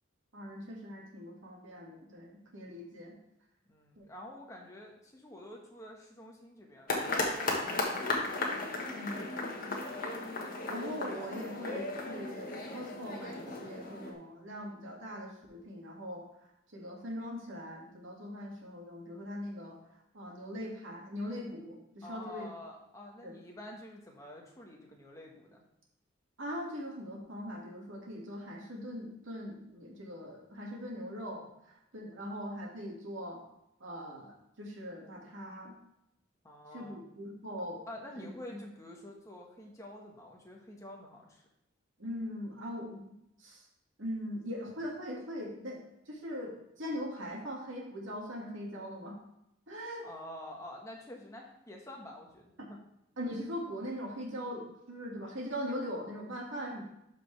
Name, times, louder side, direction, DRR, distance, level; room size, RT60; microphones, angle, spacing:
voice 1, 0.3-3.1 4.0-4.1 8.9-10.0 10.7-16.2 16.7-19.8 20.1-22.5 23.2-23.3 26.4-33.4 33.8-35.7 36.7-37.8 38.2-38.6 42.0-43.1 43.4-43.6 44.0-49.2 49.7-50.1 53.2-56.8, equal, 75° right, -1 dB, 2.2 m, -41 dB
voice 2, 3.7-8.1 22.0-25.6 36.4-37.0 37.9-41.4 50.0-52.8, left 1 dB, 15° left, -1 dB, 1.4 m, -48 dB
sound 1, 6.9-14.1, left 2 dB, 45° left, 1.4 m, -35 dB
12.5 x 5.1 x 3.4 m, 0.83 s
head